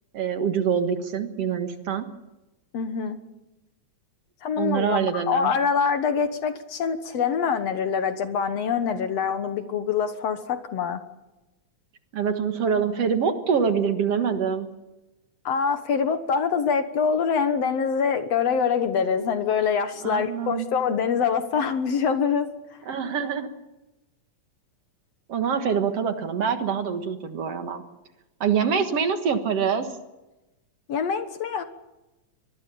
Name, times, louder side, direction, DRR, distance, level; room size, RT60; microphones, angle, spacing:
voice 1, 0.1-2.1 4.6-5.5 12.1-14.7 20.0-20.7 22.9-23.5 25.3-27.8 28.4-29.9, right 7 dB, 55° right, 7 dB, 2.4 m, -25 dB
voice 2, 2.7-3.2 4.4-11.0 15.5-22.5 30.9-31.6, left 6 dB, 60° left, 9 dB, 2.2 m, -25 dB
24.5 x 21.0 x 7.1 m, 1.0 s
omnidirectional pair, 3.5 m